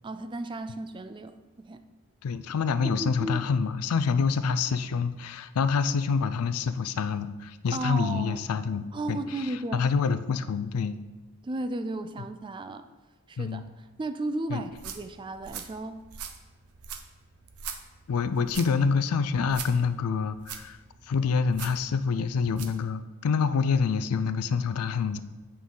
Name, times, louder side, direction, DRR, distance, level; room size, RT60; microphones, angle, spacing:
voice 1, 0.0-1.8 2.8-3.4 7.7-8.4 8.9-9.9 11.4-12.9 13.3-16.1, right 2 dB, 20° right, 10 dB, 0.3 m, -34 dB
voice 2, 2.2-10.9 13.4-13.6 14.5-14.6 18.1-20.8 21.1-25.2, left 5 dB, 85° left, 13 dB, 0.4 m, -27 dB
sound 1, 14.6-22.8, right 7 dB, 85° right, 0.7 m, -43 dB
8.5 x 5.5 x 3.8 m, 1.2 s
head